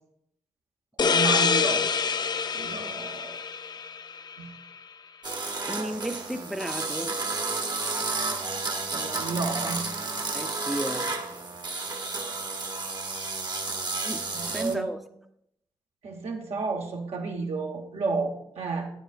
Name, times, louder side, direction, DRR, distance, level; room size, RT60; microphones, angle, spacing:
sound 1, 1.0-4.4, left 5 dB, 40° left, 0.4 m, -26 dB
voice 1, 1.0-1.9 2.5-3.5 4.4-4.5 8.9-9.8 14.3-15.0 16.0-18.9, right 4 dB, 70° right, 1.2 m, -31 dB
sound 2, 5.2-14.8, right 3 dB, 40° right, 1.0 m, -31 dB
voice 2, 5.7-7.2 10.3-11.1 14.0-15.0, right 1 dB, ahead, 0.6 m, -34 dB
9.2 x 8.1 x 2.5 m
supercardioid pair, 40°, 11 cm